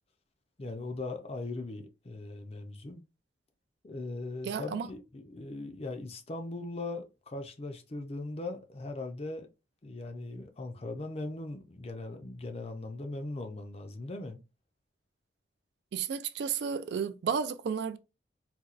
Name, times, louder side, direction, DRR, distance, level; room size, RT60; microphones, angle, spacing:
voice 1, 0.6-3.0 3.8-9.5 9.8-14.4, left 2 dB, 30° left, 0.5 m, -39 dB
voice 2, 4.4-4.9 15.9-18.0, right 6 dB, 60° right, 0.3 m, -32 dB
4.2 x 2.2 x 2.4 m
head